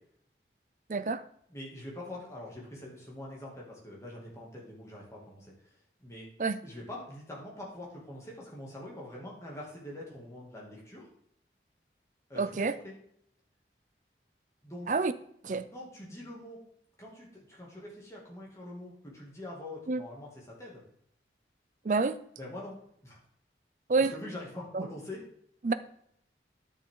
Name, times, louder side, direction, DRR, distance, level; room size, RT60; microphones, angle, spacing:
voice 1, 0.9-1.2 6.4-6.6 12.4-12.7 14.9-15.1 15.4-15.7 19.9-20.0 21.8-22.2 23.9-24.1 24.7-24.8 25.6-25.7, right 4 dB, 45° right, 12 dB, 0.4 m, -28 dB
voice 2, 1.5-6.3 6.6-11.1 12.3-12.9 14.6-14.9 15.7-16.6 17.0-20.8 22.4-22.8 23.0-23.2 24.0-25.2, left 1 dB, 15° left, -4 dB, 2.3 m, -44 dB
10.5 x 6.4 x 3.7 m, 0.68 s
head